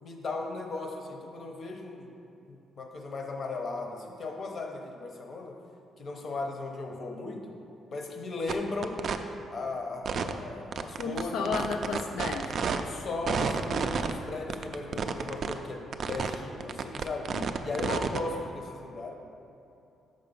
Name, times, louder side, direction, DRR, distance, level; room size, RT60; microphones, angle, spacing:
voice 1, 0.0-2.1 2.5-5.6 6.0-7.5 7.9-9.0 9.5-11.6 12.8-17.3 17.6-19.1, left 3 dB, 40° left, 2 dB, 0.8 m, -37 dB
sound 1, 8.5-8.6 8.8-9.2 10.0-10.3 10.7-12.8 13.3-14.1 14.5-15.5 15.9-16.3 16.6-18.2, right 6 dB, 45° right, 0.4 m, -30 dB
voice 2, 11.0-12.5 17.3-17.4 17.8-18.1, left 5 dB, 85° left, 4 dB, 0.4 m, -33 dB
6.5 x 5.4 x 5.3 m, 2.8 s
cardioid pair, 150°, 0 cm